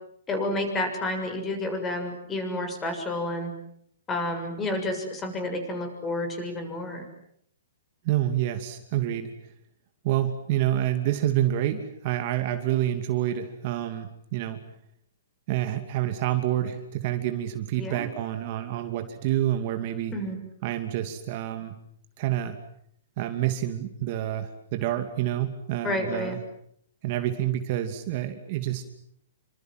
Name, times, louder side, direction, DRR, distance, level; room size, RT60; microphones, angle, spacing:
voice 1, 0.3-3.5 4.1-7.1 17.8-18.1 20.1-20.4 25.8-26.4, left 1 dB, 15° left, 7 dB, 6.9 m, -30 dB
voice 2, 8.0-9.3 10.0-14.6 15.5-20.1 20.6-21.7 22.2-22.6 23.2-26.4 27.0-28.8, right 12 dB, 40° right, 7 dB, 2.6 m, -28 dB
29.0 x 25.5 x 7.9 m, 0.70 s
hypercardioid pair, 160°, 0 cm